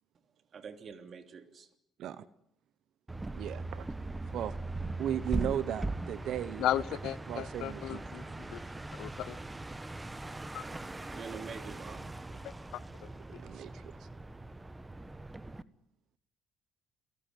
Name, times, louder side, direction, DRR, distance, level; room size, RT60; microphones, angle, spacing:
voice 1, 0.5-1.7 11.0-12.1, right 6 dB, 45° right, 3.2 m, -46 dB
sound 1, 3.1-15.6, right 2 dB, 15° right, 1.2 m, -40 dB
voice 2, 3.3-3.9 4.3-4.5 5.0-6.6 7.3-8.0 13.4-14.1, right 10 dB, 65° right, 1.0 m, -36 dB
voice 3, 6.6-8.6 8.9-9.4 10.5-10.6 12.4-13.1, left 12 dB, 70° left, 0.9 m, -36 dB
30.0 x 17.5 x 9.4 m
supercardioid pair, 75°, 0 cm